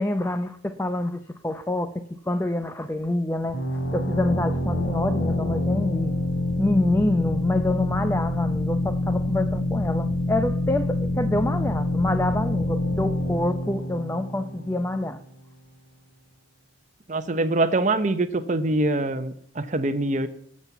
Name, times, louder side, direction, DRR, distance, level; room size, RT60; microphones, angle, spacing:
voice 1, 0.0-3.6 3.9-6.2 6.6-15.2, left 1 dB, 15° left, 9 dB, 0.6 m, -27 dB
sound 1, 3.5-15.0, left 1 dB, 70° left, 3.2 m, -26 dB
voice 2, 17.1-20.3, right 2 dB, 40° right, 11 dB, 0.8 m, -24 dB
18.0 x 7.4 x 8.1 m, 0.67 s
head